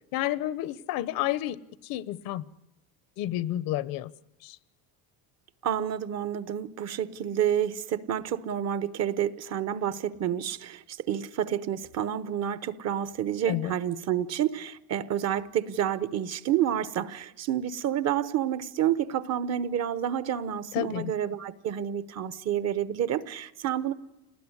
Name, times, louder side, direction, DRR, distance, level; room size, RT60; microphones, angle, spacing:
voice 1, 0.1-1.6 1.8-2.5 3.2-4.1 4.4-4.6 13.5-13.7 20.7-21.1, left 14 dB, 65° left, 0.9 m, -30 dB
voice 2, 5.6-23.9, right 10 dB, 45° right, 0.9 m, -29 dB
28.0 x 19.5 x 9.8 m
cardioid pair, 155°, 38 cm